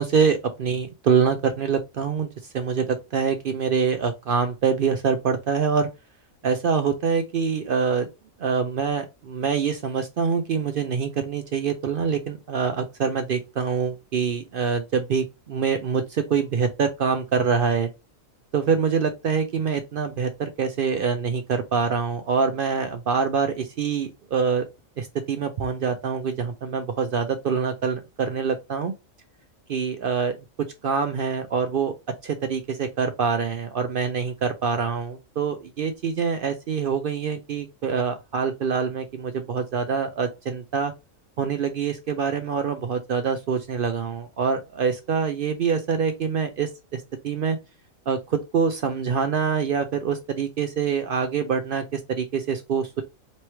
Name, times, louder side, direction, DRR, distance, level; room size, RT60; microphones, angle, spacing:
voice 1, 0.0-2.3 2.5-5.9 6.4-8.1 8.4-17.9 18.5-24.6 25.0-28.9 29.7-30.3 30.8-31.9 32.2-40.9 41.4-47.6 48.1-53.0, right 6 dB, 65° right, 0.5 m, -25 dB
3.1 x 3.1 x 4.3 m
omnidirectional pair, 1.4 m